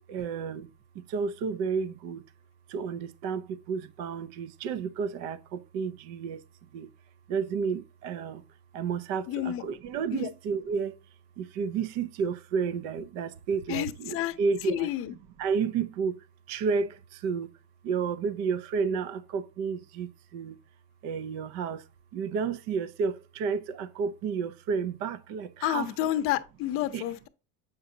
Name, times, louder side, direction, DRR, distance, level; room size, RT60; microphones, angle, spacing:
voice 1, 0.1-0.7 1.1-2.2 2.7-6.4 6.7-6.9 7.3-8.4 8.7-10.9 11.4-14.9 15.4-16.2 16.5-17.5 17.8-20.6 21.0-21.8 22.1-25.9 26.9-27.1, right 6 dB, 60° right, 0.7 m, -31 dB
voice 2, 9.3-9.6 10.1-10.3 13.7-14.3 14.7-15.1 25.6-27.3, left 13 dB, 45° left, 0.7 m, -30 dB
8.1 x 5.3 x 2.7 m
cardioid pair, 175°, 31 cm